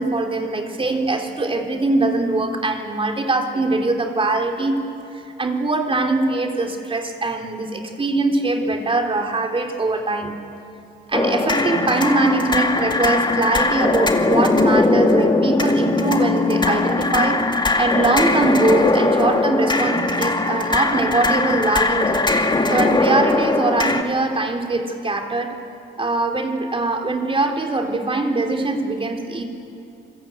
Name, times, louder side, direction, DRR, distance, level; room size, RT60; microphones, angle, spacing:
voice 1, 0.0-4.8 5.4-10.5 11.1-17.5 17.8-22.3 22.7-25.6 26.0-29.4, right 2 dB, 25° right, 3 dB, 3.3 m, -22 dB
sound 1, 11.1-24.0, left 2 dB, 20° left, 2.1 m, -20 dB
28.0 x 21.0 x 9.0 m, 2.6 s
cardioid pair, 90°, 20 cm